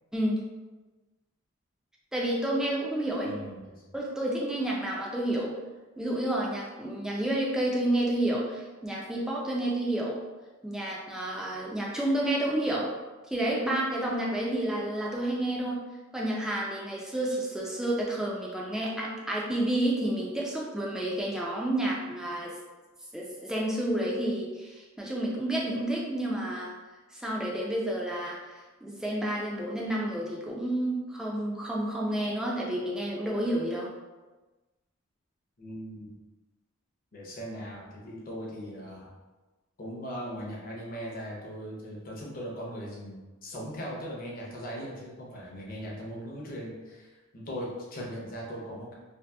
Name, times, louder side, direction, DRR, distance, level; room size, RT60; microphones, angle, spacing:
voice 1, 2.1-3.3 3.9-5.5 6.0-10.2 10.6-12.9 13.3-15.8 16.1-22.5 23.1-26.7 27.1-28.4 28.8-33.9, right 1 dB, 5° right, -4 dB, 0.4 m, -30 dB
voice 2, 3.2-3.8 35.6-36.1 37.1-39.1 39.8-47.1 47.3-48.9, equal, 45° left, -3 dB, 0.6 m, -39 dB
2.7 x 2.5 x 2.2 m, 1.2 s
head